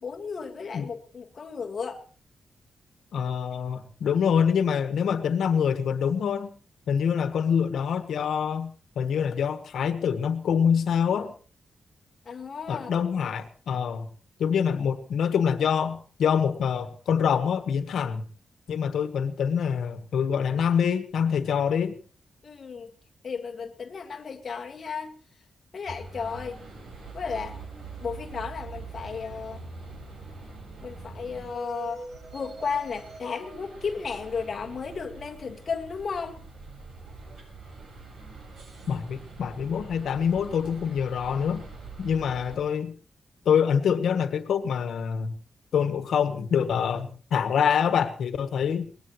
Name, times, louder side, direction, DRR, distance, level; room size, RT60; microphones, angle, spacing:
voice 1, 0.0-2.0 12.3-12.9 22.4-22.9 23.2-25.2 25.7-26.6 27.1-27.6 28.0-29.6 30.8-32.0 32.3-36.4, left 5 dB, 40° left, 3 dB, 1.9 m, -34 dB
voice 2, 3.1-6.5 6.9-11.3 12.7-14.1 14.4-18.2 18.7-22.0 38.9-41.7 42.0-42.9 43.4-45.3 45.7-48.9, left 7 dB, 85° left, 11 dB, 1.5 m, -25 dB
sound 1, 25.9-42.6, right 4 dB, 60° right, 5.3 m, -43 dB
22.5 x 19.5 x 3.2 m, 0.38 s
wide cardioid pair, 160°, 0 cm